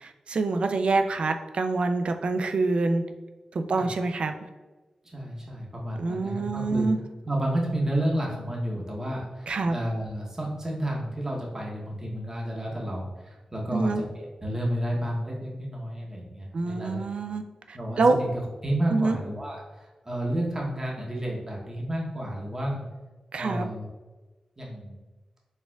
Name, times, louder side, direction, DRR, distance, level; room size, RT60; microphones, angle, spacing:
voice 1, 0.0-3.1 3.5-4.3 6.0-7.0 9.5-9.8 13.7-14.0 16.5-17.4 17.7-18.2 18.9-19.2 23.3-23.7, right 3 dB, 60° right, 7 dB, 0.3 m, -26 dB
voice 2, 5.1-6.9 7.2-17.0 17.7-22.8 23.4-23.9 24.6-25.0, right 1 dB, 25° right, -3 dB, 0.8 m, -31 dB
4.2 x 3.6 x 2.3 m, 1.2 s
wide cardioid pair, 95°, 2 cm